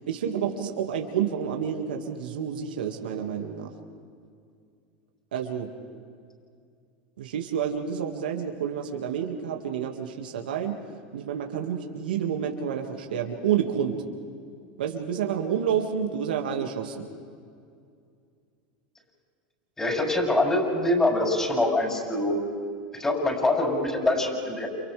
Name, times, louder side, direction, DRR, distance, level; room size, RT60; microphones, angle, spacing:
voice 1, 0.1-3.7 5.3-5.7 7.2-10.7 11.1-13.9 14.8-17.1, right 8 dB, 85° right, 2 dB, 2.0 m, -29 dB
voice 2, 19.8-22.4 23.0-24.7, left 1 dB, 10° left, -2 dB, 7.1 m, -24 dB
30.0 x 29.0 x 3.4 m, 2.3 s
hypercardioid pair, 110°, 5 cm